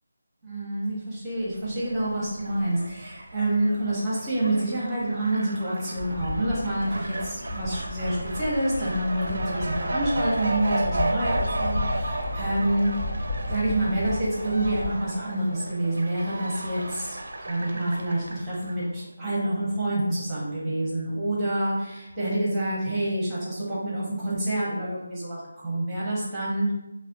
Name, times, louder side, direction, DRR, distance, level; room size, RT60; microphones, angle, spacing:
voice 1, 0.4-12.9 13.4-17.2 17.5-26.7, right 1 dB, 10° right, -9 dB, 0.7 m, -27 dB
Fowl, 1.5-18.9, right 2 dB, 55° right, 0.4 m, -34 dB
Bird vocalization bird call bird song, 6.0-15.0, left 2 dB, 55° left, 1.0 m, -33 dB
4.1 x 2.0 x 2.5 m, 0.94 s
figure-of-eight pair, 175°, 0 cm